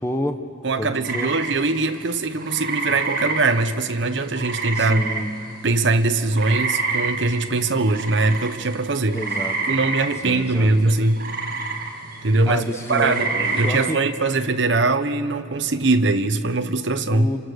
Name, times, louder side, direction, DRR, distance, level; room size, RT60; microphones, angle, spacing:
voice 1, 0.0-0.4 0.8-1.3 4.7-5.3 9.1-9.8 10.2-10.9 12.4-14.0 17.1-17.4, left 1 dB, 15° left, 6 dB, 1.0 m, -29 dB
voice 2, 0.6-5.0 5.6-9.2 9.7-11.2 12.2-12.6 12.9-17.3, right 3 dB, 60° right, 9 dB, 1.0 m, -21 dB
sound 1, 1.0-5.7 6.0-14.0, right 4 dB, 45° right, 2.0 m, -28 dB
27.5 x 26.0 x 6.5 m, 2.5 s
head